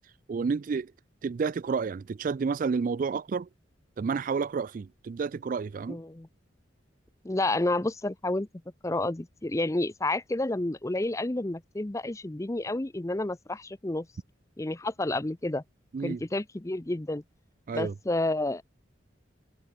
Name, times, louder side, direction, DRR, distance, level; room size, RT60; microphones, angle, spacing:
voice 1, 0.3-0.9 1.2-3.5 4.0-6.0 15.9-16.2 17.7-17.9, right 5 dB, 45° right, 0.3 m, -30 dB
voice 2, 5.9-6.3 7.2-8.5 8.8-14.1 14.6-15.6 16.0-17.2 17.7-18.6, left 2 dB, 15° left, 0.5 m, -30 dB
head